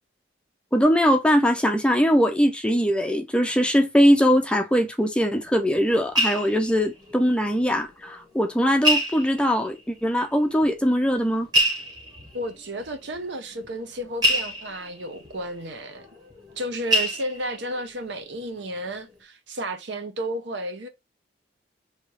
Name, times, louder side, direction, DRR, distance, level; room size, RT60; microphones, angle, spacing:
voice 1, 0.7-11.5, equal, 5° left, 0.4 m, -21 dB
sound 1, 5.5-7.8 8.0-8.1 8.8-9.8 10.6-10.7 11.5-16.6 16.9-17.8 18.3-18.6 18.9-19.0, equal, 20° right, 1.2 m, -27 dB
voice 2, 12.3-16.1 16.6-20.9, right 1 dB, 70° right, 0.8 m, -32 dB
3.3 x 2.8 x 4.6 m
head